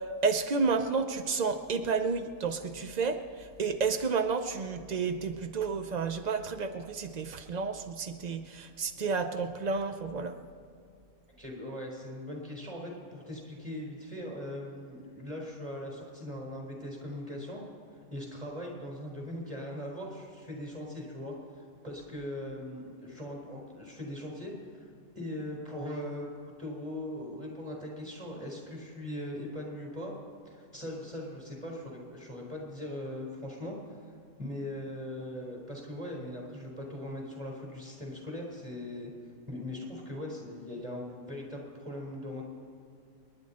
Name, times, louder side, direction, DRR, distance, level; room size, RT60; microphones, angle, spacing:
voice 1, 0.0-10.4, right 4 dB, 55° right, 7 dB, 0.4 m, -31 dB
voice 2, 11.4-17.6 18.1-24.9 25.1-26.3 26.6-30.1 30.4-33.8 34.0-34.1 34.4-39.1 39.5-42.4, left 1 dB, 20° right, -1 dB, 4.3 m, -40 dB
27.0 x 10.5 x 4.3 m, 2.4 s
omnidirectional pair, 1.6 m